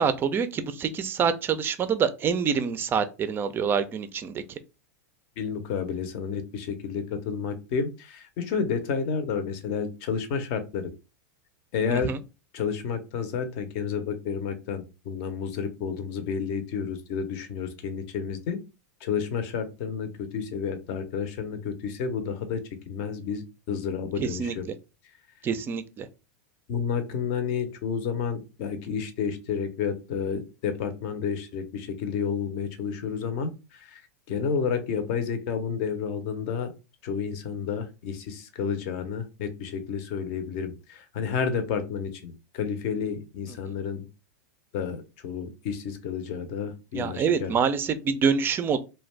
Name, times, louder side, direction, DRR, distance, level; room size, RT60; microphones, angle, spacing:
voice 1, 0.0-4.4 11.9-12.2 24.2-24.5 25.4-26.1 46.9-48.8, right 6 dB, 25° right, 0.3 m, -26 dB
voice 2, 5.4-10.9 11.7-12.2 12.5-18.6 19.0-24.7 26.7-34.0 34.3-36.7 37.0-44.1 44.7-47.6, left 6 dB, 55° left, 0.6 m, -30 dB
2.5 x 2.2 x 3.1 m
hypercardioid pair, 115°, 8 cm